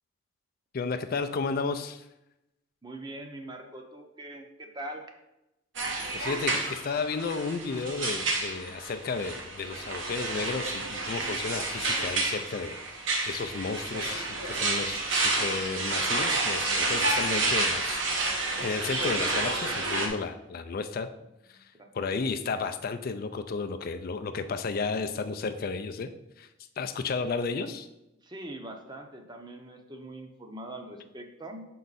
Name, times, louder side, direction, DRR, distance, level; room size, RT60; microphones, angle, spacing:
voice 1, 0.7-2.1 6.1-21.1 21.5-26.1 26.4-26.5 26.8-27.9, left 4 dB, 50° left, 8 dB, 0.4 m, -33 dB
voice 2, 2.8-5.0 21.5-21.9 28.2-31.7, right 1 dB, 20° right, 4 dB, 0.7 m, -42 dB
sound 1, 5.7-20.1, right 2 dB, 70° right, 1.1 m, -30 dB
6.4 x 4.6 x 4.0 m, 0.91 s
head